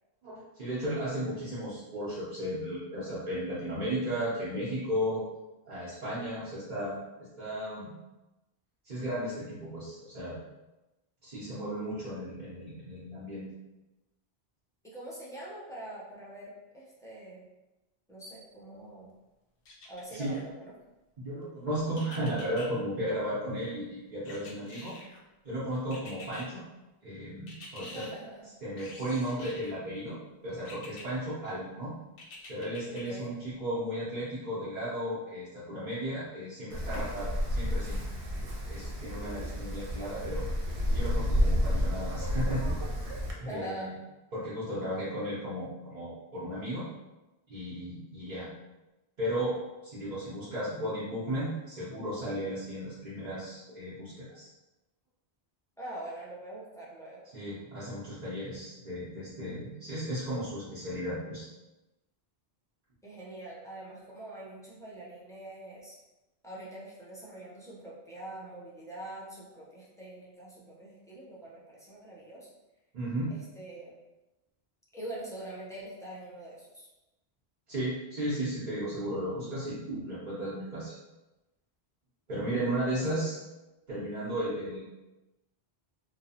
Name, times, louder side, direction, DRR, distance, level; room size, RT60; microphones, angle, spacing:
voice 1, 0.2-5.2 5.7-7.0 7.4-7.9 8.8-10.4 11.2-13.5 20.1-20.4 21.2-25.0 25.4-26.6 27.0-28.1 28.6-30.2 30.4-32.0 32.5-38.0 38.7-40.4 40.9-42.7 43.4-43.9 44.3-46.9 47.5-48.5 49.2-49.6 49.8-54.5 57.3-61.5 72.9-73.3 77.7-81.0 82.3-83.4 83.9-84.8, equal, 50° right, -11 dB, 0.8 m, -35 dB
voice 2, 14.8-17.4 18.1-19.1 19.9-20.7 27.8-28.5 32.9-33.3 43.4-44.0 55.8-57.2 63.0-66.0 66.4-72.5 73.3-74.0 74.9-76.9 82.7-83.4, right 1 dB, 5° left, -6 dB, 0.5 m, -44 dB
Chipmunk - rodent - rat - squirrel angry or chattering, 19.6-20.4 21.9-22.7 24.2-25.2 25.9-26.5 27.5-28.1 28.8-29.7 30.6-31.0 32.2-33.0 33.5-33.6, left 2 dB, 65° left, 0.7 m, -47 dB
Wind, 36.7-43.3, equal, 85° right, 0.9 m, -30 dB
2.9 x 2.0 x 2.7 m, 1.0 s
omnidirectional pair, 1.1 m